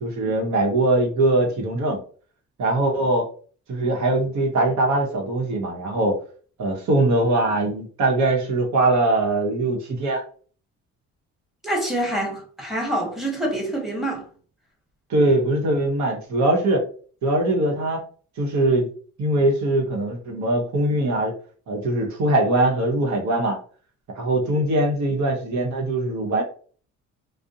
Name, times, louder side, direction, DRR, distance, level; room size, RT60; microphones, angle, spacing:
voice 1, 0.0-2.0 2.6-3.3 3.7-6.2 6.6-10.2 15.1-16.8 17.2-18.0 18.4-18.9 19.2-21.3 21.7-23.6 24.2-26.4, right 2 dB, 65° right, 0.9 m, -21 dB
voice 2, 11.6-14.3, right 1 dB, ahead, 1.1 m, -26 dB
2.4 x 2.0 x 2.7 m
cardioid pair, 90°, 30 cm